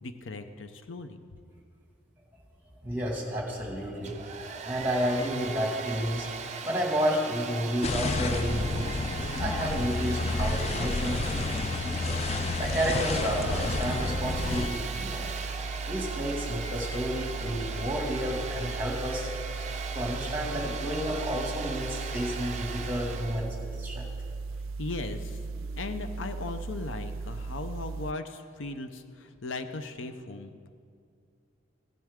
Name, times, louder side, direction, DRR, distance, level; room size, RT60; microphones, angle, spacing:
voice 1, 0.0-1.2 24.8-25.4 25.8-30.7, left 3 dB, 75° left, 9 dB, 0.6 m, -38 dB
voice 2, 2.8-4.4 4.6-6.3 6.6-8.9 9.4-12.2 12.6-15.4 15.8-19.3 19.9-24.0 25.6-25.8, equal, 10° right, -1 dB, 2.0 m, -31 dB
Domestic sounds home sounds, 3.9-23.5, right 5 dB, 35° right, 0.6 m, -38 dB
sound 1, 7.8-14.7, left 3 dB, 30° left, 0.4 m, -30 dB
sound 2, 12.6-28.1, right 4 dB, 90° right, 0.3 m, -37 dB
16.0 x 10.5 x 3.6 m, 2.3 s
head